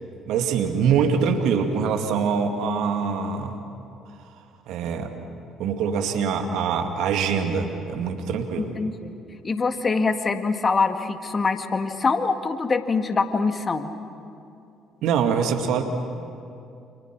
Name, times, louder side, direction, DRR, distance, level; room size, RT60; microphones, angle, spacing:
voice 1, 0.3-3.6 4.7-5.1 5.6-8.7 15.0-15.8, right 6 dB, 70° right, 5 dB, 2.3 m, -24 dB
voice 2, 8.6-9.1 9.4-13.9, left 4 dB, 35° left, 7 dB, 1.9 m, -24 dB
29.5 x 27.5 x 6.2 m, 2.6 s
hypercardioid pair, 55°, 0 cm